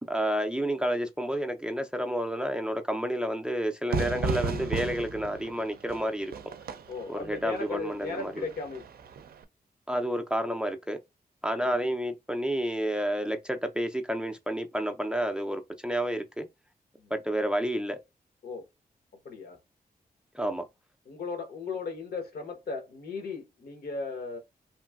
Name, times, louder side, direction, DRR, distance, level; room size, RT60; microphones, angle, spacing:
voice 1, 0.0-6.3 7.1-8.5 9.9-11.0 11.4-16.5 17.1-18.0 20.3-20.6, equal, 5° right, 0.4 m, -30 dB
Fire / Fireworks, 3.9-9.4, right 4 dB, 75° right, 0.4 m, -35 dB
voice 2, 6.9-8.9 11.6-11.9 17.0-17.1 18.4-18.7 19.2-19.6 21.1-24.4, left 4 dB, 80° left, 0.9 m, -37 dB
3.0 x 2.6 x 2.3 m
wide cardioid pair, 90°, 16 cm